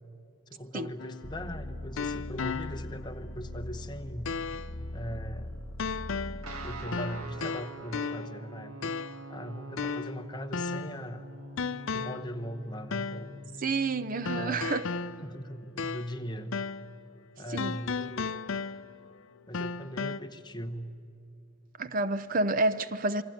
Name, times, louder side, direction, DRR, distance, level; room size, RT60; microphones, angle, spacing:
voice 1, 0.5-4.3 4.9-5.7 6.6-8.9 9.3-11.3 11.9-13.4 14.3-14.7 15.2-16.5 17.4-18.4 19.5-20.9, equal, 20° left, 1.0 m, -40 dB
sound 1, 1.0-3.1 3.5-3.6 4.3-4.8 5.8-6.5 6.9-8.4 8.8-9.3 9.8-11.1 11.6-12.3 12.9-13.3 14.3-16.3 16.5-16.9 17.6-19.1 19.5-20.2, left 5 dB, 65° left, 0.6 m, -35 dB
sound 2, 1.2-6.9, left 1 dB, 5° left, 2.2 m, -41 dB
Guitar, 6.4-14.5, right 1 dB, 85° right, 1.8 m, -45 dB
voice 2, 13.6-14.9 17.5-17.8 21.8-23.2, right 2 dB, 40° right, 0.6 m, -29 dB
27.5 x 23.5 x 9.2 m
head